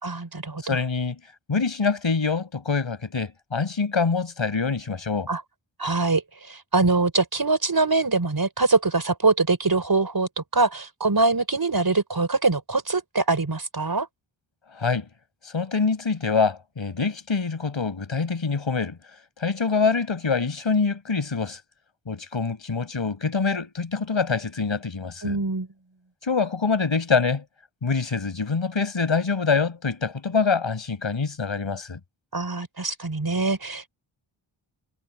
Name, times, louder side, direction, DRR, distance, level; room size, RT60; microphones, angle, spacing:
voice 1, 0.0-0.8 5.3-5.4 5.8-14.1 25.2-25.7 32.3-33.9, right 3 dB, 45° right, 5.4 m, -23 dB
voice 2, 0.6-1.2 1.5-5.3 14.7-15.1 15.4-19.0 19.4-21.6 22.1-25.4 26.2-27.4 27.8-32.0, left 5 dB, 65° left, 7.4 m, -25 dB
cardioid pair, 50°, 49 cm